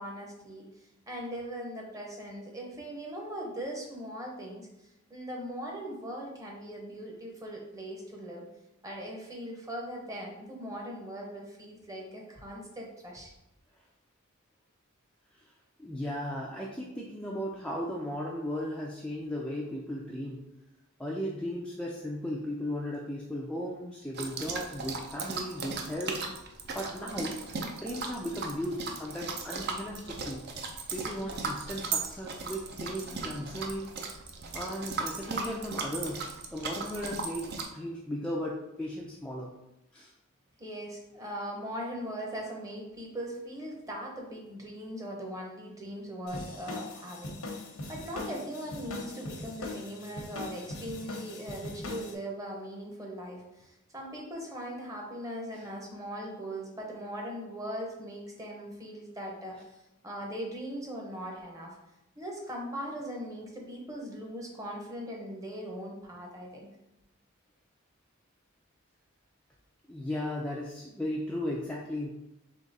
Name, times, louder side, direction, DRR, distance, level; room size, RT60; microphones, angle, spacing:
voice 1, 0.0-4.7 5.1-8.5 8.8-13.3 40.6-47.4 47.9-61.8 62.2-66.7, equal, 15° right, -1 dB, 0.8 m, -40 dB
voice 2, 15.8-20.4 21.0-26.2 26.7-27.4 27.7-30.4 30.9-33.9 34.5-39.5 39.9-40.1 55.5-55.6 69.9-72.1, equal, 5° left, -4 dB, 0.4 m, -36 dB
sound 1, 24.1-37.7, right 4 dB, 50° right, 0.5 m, -37 dB
sound 2, 46.3-52.1, left 2 dB, 80° left, 0.9 m, -40 dB
3.7 x 3.3 x 4.0 m, 0.88 s
head